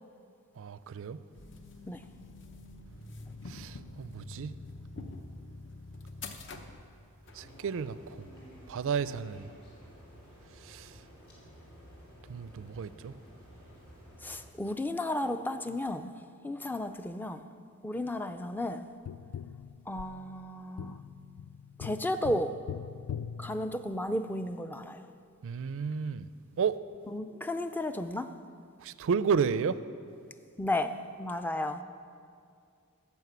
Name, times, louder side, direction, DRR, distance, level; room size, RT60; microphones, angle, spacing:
voice 1, 0.6-1.2 3.5-4.5 7.3-8.3 8.7-9.5 10.6-11.0 12.3-13.1 25.4-26.3 26.6-26.8 28.8-29.8, right 6 dB, 60° right, 0.4 m, -32 dB
sound 1, 1.3-7.4, left 2 dB, 55° left, 0.8 m, -46 dB
sound 2, 7.2-14.5, equal, 75° left, 3.4 m, -53 dB
voice 2, 14.2-16.1 16.4-17.4 17.8-18.9 19.9-21.0 21.8-22.5 23.4-25.0 27.1-28.3 30.6-30.9 31.2-31.8, left 1 dB, 10° left, 0.4 m, -33 dB
Tap, 19.1-24.3 26.9-27.0, left 8 dB, 90° left, 0.3 m, -42 dB
11.0 x 7.2 x 8.1 m
head